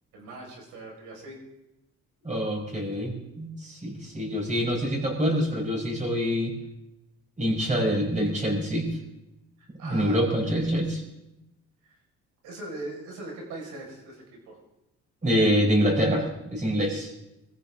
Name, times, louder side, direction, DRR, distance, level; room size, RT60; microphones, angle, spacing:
voice 1, 0.1-1.4 2.6-2.7 4.8-4.9 9.6-10.2 10.5-10.8 11.8-12.0 12.4-14.6, right 2 dB, 90° right, 0 dB, 5.3 m, -41 dB
voice 2, 2.2-6.5 7.4-8.9 9.8-11.0 15.2-17.1, equal, 25° right, -1 dB, 5.7 m, -25 dB
23.0 x 15.0 x 3.7 m, 0.90 s
cardioid pair, 90°, 30 cm